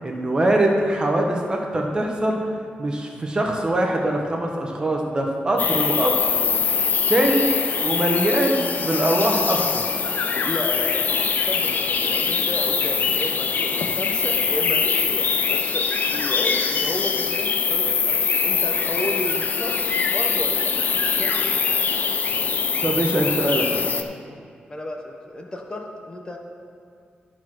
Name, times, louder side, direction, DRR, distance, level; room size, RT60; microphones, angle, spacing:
voice 1, 0.0-2.4 2.8-6.2 7.1-7.5 7.8-9.8 22.8-23.8, right 1 dB, 25° right, 0 dB, 1.2 m, -22 dB
sound 1, 5.6-24.0, left 5 dB, 60° left, 0.6 m, -23 dB
voice 2, 10.4-15.8 16.1-20.7 21.1-21.3 24.7-26.4, left 1 dB, 25° left, 2 dB, 0.9 m, -32 dB
12.0 x 4.7 x 6.1 m, 2.3 s
wide cardioid pair, 110°, 3 cm